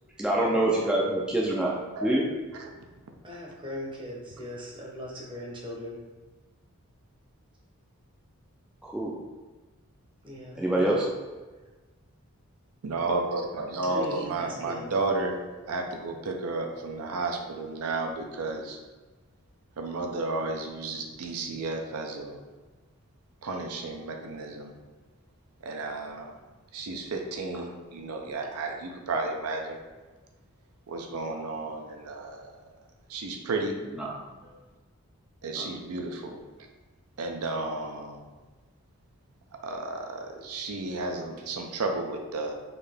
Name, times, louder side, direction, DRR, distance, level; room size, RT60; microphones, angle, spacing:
voice 1, 0.2-1.7 2.0-2.3 8.8-9.2 10.6-11.1 34.0-34.2 35.5-35.7, right 1 dB, 5° right, -4 dB, 0.3 m, -25 dB
voice 2, 3.2-6.0 10.2-10.9 13.8-14.9, left 1 dB, 20° right, -2 dB, 0.7 m, -38 dB
voice 3, 12.8-15.4 15.7-18.8 19.8-22.4 23.4-24.7 25.6-26.4 26.7-29.8 30.9-32.5 33.1-33.8 34.4-34.5 35.4-36.4 37.2-38.2 39.6-42.5, right 3 dB, 80° right, 3 dB, 0.5 m, -32 dB
3.9 x 2.7 x 3.4 m, 1.3 s
head